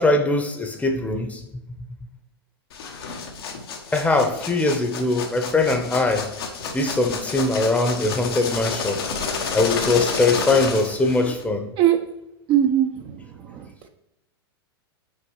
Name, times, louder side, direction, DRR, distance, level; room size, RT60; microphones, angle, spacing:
voice 1, 0.0-1.4 3.9-6.3 6.7-9.0 9.5-11.6, left 2 dB, 10° left, 0.9 m, -21 dB
sound 1, 2.7-11.4, left 5 dB, 70° left, 1.3 m, -30 dB
voice 2, 12.5-13.7, right 11 dB, 40° right, 0.6 m, -21 dB
6.4 x 4.6 x 4.7 m
hypercardioid pair, 105°, 13 cm